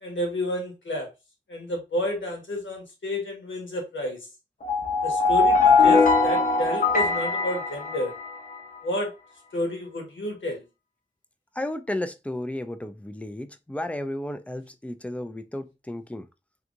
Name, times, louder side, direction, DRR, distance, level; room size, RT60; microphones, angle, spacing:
voice 1, 0.0-1.1 1.5-4.3 5.0-8.1 8.8-9.1 9.5-10.6, left 1 dB, 80° left, 1.3 m, -30 dB
sound 1, 4.6-8.6, left 4 dB, 45° left, 0.9 m, -21 dB
voice 2, 11.6-16.3, left 1 dB, 5° left, 0.4 m, -33 dB
3.5 x 2.8 x 2.5 m
wide cardioid pair, 95°, 19 cm